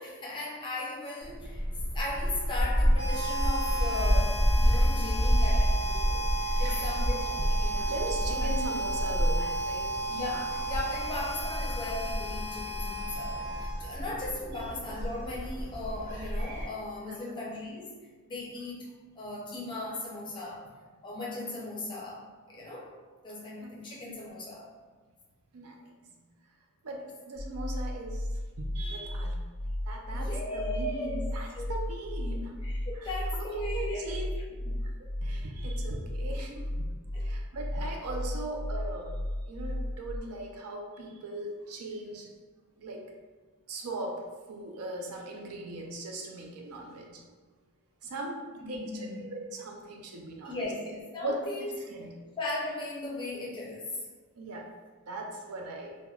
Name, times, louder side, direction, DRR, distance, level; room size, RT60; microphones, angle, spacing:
voice 1, 0.0-1.7 1.9-6.3 6.6-7.9 8.2-8.8 10.1-17.9 18.2-18.9 19.2-20.6 21.0-22.9 23.2-24.7 30.1-31.2 31.6-31.7 32.6-34.0 37.1-37.2 48.6-49.2 50.4-51.7 52.4-53.9, left 2 dB, 20° left, -4 dB, 0.5 m, -37 dB
Gull seagull, 1.2-16.6, equal, 40° right, 1.1 m, -29 dB
Harmonica, 2.9-14.0, right 2 dB, 25° right, 0.8 m, -34 dB
voice 2, 3.8-4.2 4.6-5.6 6.6-10.2 14.6-14.7 17.1-17.4 23.6-24.0 25.5-25.9 26.8-28.3 28.6-29.4 29.9-32.5 32.9-36.9 37.2-39.2 39.5-42.3 42.8-43.0 43.7-44.2 44.5-47.2 48.0-50.7 51.2-52.1 54.4-54.7 55.1-56.0, right 2 dB, 85° right, 1 dB, 0.5 m, -40 dB
sound 1, 27.4-40.2, left 1 dB, 80° left, 0.4 m, -34 dB
3.3 x 2.1 x 2.3 m, 1.4 s
head